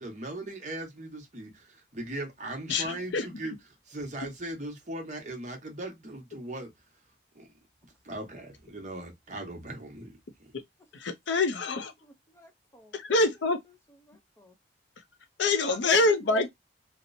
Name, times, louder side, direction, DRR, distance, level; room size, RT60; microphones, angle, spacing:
voice 1, 0.0-3.5 3.9-6.7 7.3-7.5 8.0-10.5, right 1 dB, 40° right, 0.8 m, -39 dB
voice 2, 2.7-3.4 10.5-10.6 10.9-11.9 12.9-13.6 15.4-16.5, left 3 dB, 85° left, 0.5 m, -26 dB
voice 3, 12.0-12.9 14.0-14.5 15.7-16.5, left 1 dB, 15° left, 0.6 m, -48 dB
2.8 x 2.0 x 2.5 m
head